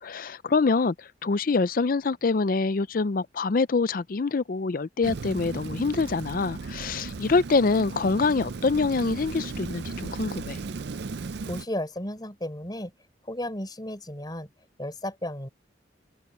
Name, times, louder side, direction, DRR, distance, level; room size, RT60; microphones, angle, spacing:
voice 1, 0.0-10.6, left 4 dB, 50° left, 0.5 m, -25 dB
Rain, 5.0-11.7, right 4 dB, 65° right, 0.5 m, -36 dB
voice 2, 11.4-12.9 13.2-14.5 14.8-15.5, left 1 dB, 25° left, 4.5 m, -34 dB
open air
head